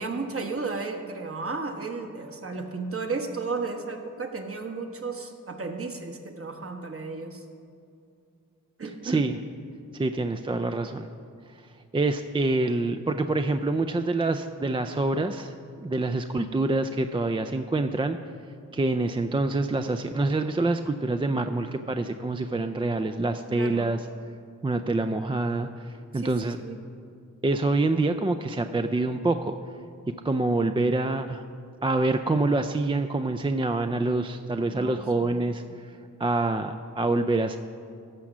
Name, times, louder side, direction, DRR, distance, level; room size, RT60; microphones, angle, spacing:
voice 1, 0.0-7.4 8.8-9.3 23.5-23.9 26.1-26.3 26.6-26.8 34.6-35.6, right 4 dB, 45° right, 4 dB, 1.2 m, -34 dB
voice 2, 9.0-9.4 9.9-11.1 11.9-18.2 18.7-24.0 24.6-26.6 27.4-29.5 30.2-31.4 31.8-35.6 36.2-37.6, right 2 dB, 15° right, 8 dB, 0.4 m, -26 dB
13.5 x 4.9 x 7.3 m, 2.5 s
cardioid pair, 70°, 31 cm